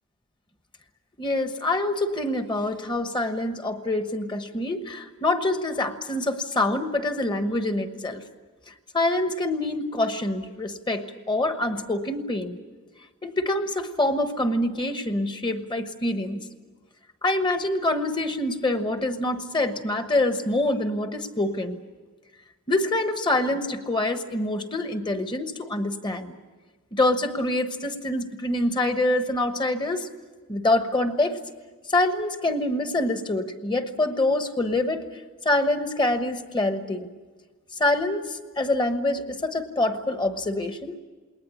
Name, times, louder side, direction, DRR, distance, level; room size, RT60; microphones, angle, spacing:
voice 1, 1.2-8.2 8.7-12.6 13.2-16.4 17.2-21.8 22.7-26.3 26.9-30.1 30.5-31.4 31.9-35.0 35.4-37.1 37.8-40.9, left 2 dB, 20° left, 8 dB, 1.2 m, -25 dB
20.5 x 19.5 x 9.9 m, 1.4 s
head